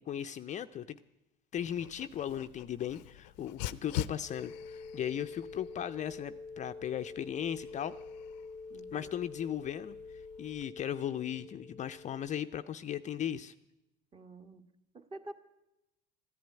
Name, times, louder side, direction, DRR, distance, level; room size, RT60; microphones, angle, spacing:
voice 1, 0.1-1.0 1.5-7.9 8.9-10.0 10.4-13.5, left 10 dB, 35° left, 10 dB, 0.5 m, -37 dB
Dog, 1.6-10.6, left 12 dB, 85° left, 0.6 m, -45 dB
sound 1, 4.3-12.7, left 4 dB, 5° left, 0.9 m, -47 dB
voice 2, 8.7-9.1 14.1-15.3, right 2 dB, 25° right, 8 dB, 1.4 m, -49 dB
14.0 x 10.5 x 8.9 m, 0.91 s
supercardioid pair, 95°, 21 cm